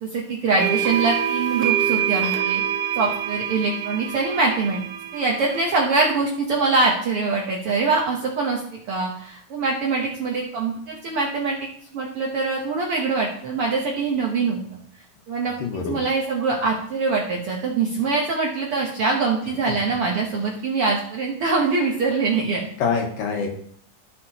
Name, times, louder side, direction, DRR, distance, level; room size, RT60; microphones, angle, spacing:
voice 1, 0.0-2.6 2.9-4.8 5.1-8.6 8.9-11.6 11.9-14.6 15.3-15.6 15.9-22.7, right 4 dB, 70° right, -1 dB, 1.4 m, -23 dB
sound 1, 0.6-5.9, right 9 dB, 90° right, 2.8 m, -26 dB
voice 2, 15.4-16.0 22.8-23.5, left 5 dB, 90° left, 2 dB, 3.1 m, -25 dB
13.5 x 6.0 x 2.9 m, 0.62 s
omnidirectional pair, 3.9 m